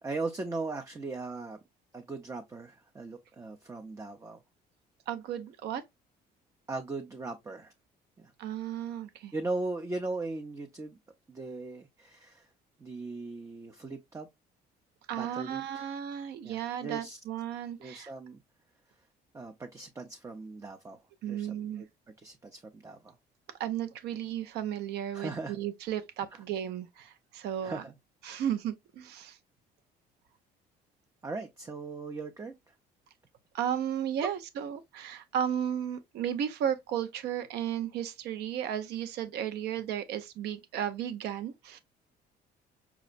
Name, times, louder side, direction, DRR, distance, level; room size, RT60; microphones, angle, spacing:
voice 1, 0.0-1.6 1.9-4.4 6.7-7.7 8.2-8.3 9.3-11.0 11.3-12.5 12.8-14.3 15.1-15.9 16.4-17.2 17.8-18.4 19.3-21.0 21.3-21.9 22.2-23.2 25.1-25.6 27.6-28.0 28.3-28.4 31.2-32.7 34.2-34.3, right 3 dB, 20° right, 0.5 m, -38 dB
voice 2, 5.1-5.8 8.4-9.3 15.1-18.1 21.2-21.9 23.6-27.8 28.2-29.4 33.5-41.8, right 9 dB, 75° right, 0.6 m, -34 dB
5.8 x 2.1 x 2.4 m
cardioid pair, 110°, 17 cm